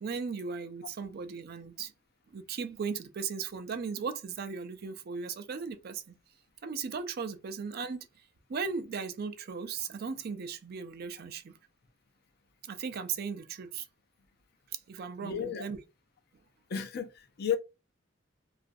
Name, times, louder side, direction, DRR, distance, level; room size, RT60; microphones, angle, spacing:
voice 1, 0.0-1.9 2.3-6.1 6.6-11.6 12.6-13.9 14.7-15.8, right 5 dB, 50° right, 0.4 m, -37 dB
voice 2, 15.2-15.6 16.7-17.6, left 8 dB, 55° left, 0.5 m, -33 dB
3.0 x 2.4 x 2.5 m
head